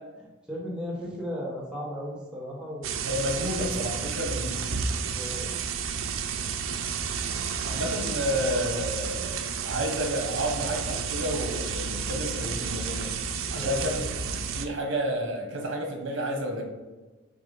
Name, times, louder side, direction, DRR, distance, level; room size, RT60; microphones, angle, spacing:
voice 1, 0.5-2.9 5.1-5.5 13.5-13.9, equal, 5° right, -5 dB, 1.3 m, -35 dB
sound 1, 2.8-14.7, right 6 dB, 85° right, 0.5 m, -31 dB
voice 2, 3.0-4.7 7.6-9.4 9.6-13.1 13.5-14.0 14.3-16.6, equal, 70° right, 1 dB, 1.3 m, -30 dB
6.9 x 2.6 x 5.3 m, 1.2 s
head